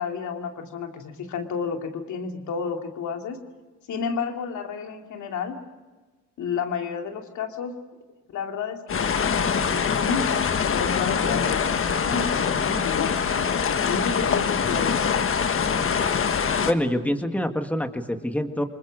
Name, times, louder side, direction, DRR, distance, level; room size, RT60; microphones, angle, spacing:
voice 1, 0.0-3.4 3.9-5.6 6.4-7.7 8.3-10.4 10.7-13.3 13.8-15.3, left 6 dB, 75° left, 4 dB, 2.6 m, -31 dB
sound 1, 8.9-16.7, left 6 dB, 45° left, 1.5 m, -24 dB
voice 2, 16.6-18.6, equal, 5° left, 6 dB, 1.8 m, -26 dB
28.5 x 21.0 x 6.3 m, 1.3 s
cardioid pair, 90°, 30 cm